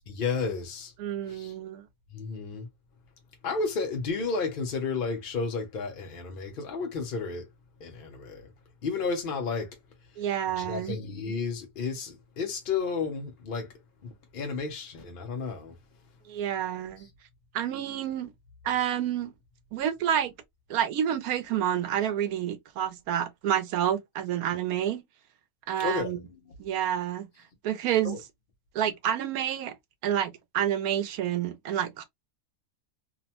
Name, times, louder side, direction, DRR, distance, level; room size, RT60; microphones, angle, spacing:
voice 1, 0.2-0.9 1.3-1.5 2.1-2.7 3.4-7.5 7.8-8.5 8.8-9.7 10.6-13.7 14.0-15.7 25.8-26.2 28.0-28.2, left 4 dB, 60° left, 0.6 m, -32 dB
voice 2, 1.0-1.8 10.2-11.0 16.3-17.1 17.5-18.3 18.6-19.3 19.7-20.3 20.7-25.0 25.7-26.2 26.6-27.3 27.6-28.2 28.7-29.7 30.0-32.0, right 10 dB, 80° right, 1.1 m, -29 dB
2.7 x 2.1 x 2.7 m
omnidirectional pair, 1.5 m